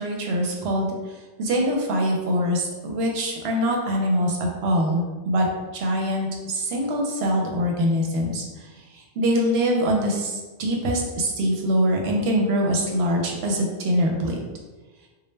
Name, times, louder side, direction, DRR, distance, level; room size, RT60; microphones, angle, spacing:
voice 1, 0.0-5.5 5.7-14.4, equal, 70° right, 1 dB, 0.8 m, -24 dB
2.1 x 2.1 x 3.1 m, 1.3 s
omnidirectional pair, 1.2 m